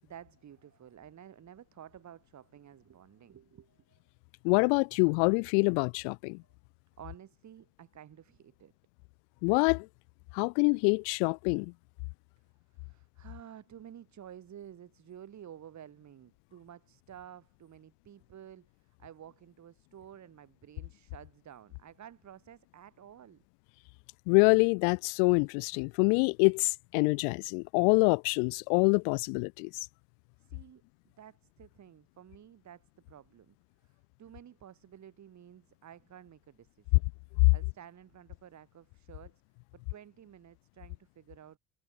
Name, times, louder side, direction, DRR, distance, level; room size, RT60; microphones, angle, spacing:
voice 1, 0.0-4.0 7.0-8.7 12.7-23.4 30.4-33.5 33.8-37.1 37.5-39.4 39.7-41.6, right 10 dB, 50° right, 7.8 m, -52 dB
voice 2, 4.4-6.4 9.4-9.9 10.3-11.7 24.3-29.7 37.4-37.5, left 40 dB or more, 75° left, 0.5 m, -25 dB
hypercardioid pair, 75°, 37 cm